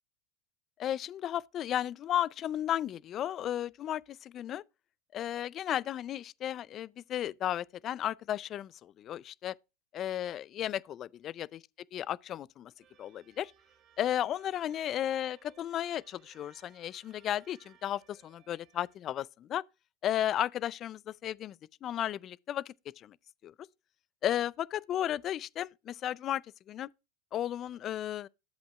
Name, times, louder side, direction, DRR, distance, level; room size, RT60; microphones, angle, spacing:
voice 1, 0.8-4.6 5.1-9.5 9.9-11.5 11.9-12.7 13.0-13.5 14.0-19.6 20.0-23.2 23.4-23.5 24.2-26.4 26.7-26.9 27.3-28.3, left 11 dB, 40° left, 0.4 m, -34 dB
sound 1, 12.8-19.0, right 9 dB, 45° right, 1.7 m, -64 dB
11.0 x 7.8 x 2.3 m
hypercardioid pair, 105°, 0 cm